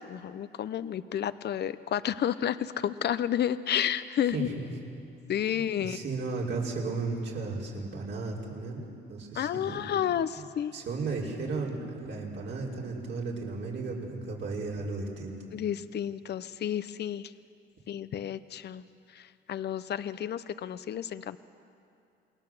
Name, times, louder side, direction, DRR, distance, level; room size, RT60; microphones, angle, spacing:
voice 1, 0.1-4.5 5.3-6.0 9.4-10.7 15.5-17.3 17.9-18.8 19.2-19.3 19.5-21.4, left 10 dB, 60° left, 14 dB, 0.8 m, -31 dB
voice 2, 4.3-4.7 5.5-8.8 9.1-9.9 10.3-10.5 10.7-15.4, right 3 dB, 65° right, -3 dB, 5.3 m, -35 dB
28.0 x 20.5 x 7.8 m, 2.5 s
cardioid pair, 90°, 20 cm